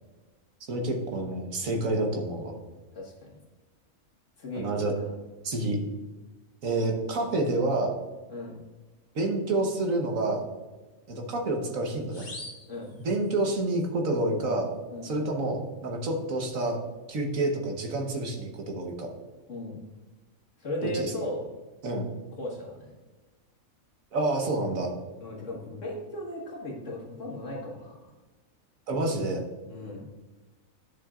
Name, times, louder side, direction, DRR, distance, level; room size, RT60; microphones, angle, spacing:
voice 1, 0.7-2.6 4.6-4.9 5.4-5.8 6.6-7.9 9.1-10.4 11.1-12.3 13.0-14.7 15.0-16.8 17.1-19.1 20.8-21.1 21.8-22.1 24.1-24.9 28.9-29.5, right 2 dB, 70° right, 3 dB, 1.6 m, -28 dB
voice 2, 3.0-3.4 4.4-5.1 8.3-8.6 12.7-12.9 14.9-15.1 19.5-19.8 20.6-21.5 22.4-22.9 25.2-28.1 29.7-30.0, left 1 dB, 60° left, -2 dB, 2.1 m, -37 dB
sound 1, 12.1-13.6, left 2 dB, 35° left, 1.4 m, -45 dB
11.0 x 6.5 x 2.4 m, 1.2 s
omnidirectional pair, 1.4 m